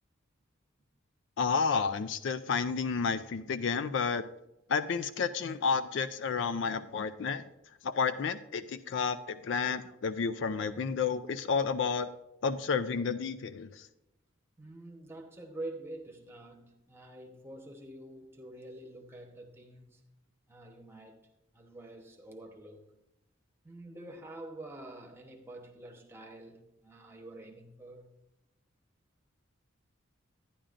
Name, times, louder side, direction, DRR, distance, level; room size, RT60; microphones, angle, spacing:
voice 1, 1.4-4.3 4.7-7.4 7.8-12.1 12.4-13.9, left 5 dB, 60° left, 0.3 m, -31 dB
voice 2, 14.6-20.0 20.5-21.3 21.5-22.9 23.6-28.1, right 1 dB, 10° right, 0.9 m, -47 dB
11.5 x 10.0 x 2.5 m
head